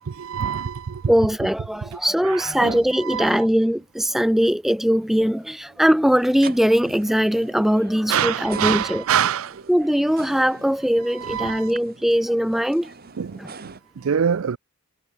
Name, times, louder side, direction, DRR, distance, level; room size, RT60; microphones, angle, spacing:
voice 1, 0.0-1.1 1.8-2.0 2.2-3.4 8.1-9.6 11.2-11.7 13.2-14.6, right 8 dB, 75° right, 0.5 m, -25 dB
voice 2, 1.1-9.0 9.7-12.9 13.4-13.5, equal, ahead, 0.3 m, -20 dB
sound 1, 4.9-13.8, right 4 dB, 45° right, 2.1 m, -43 dB
head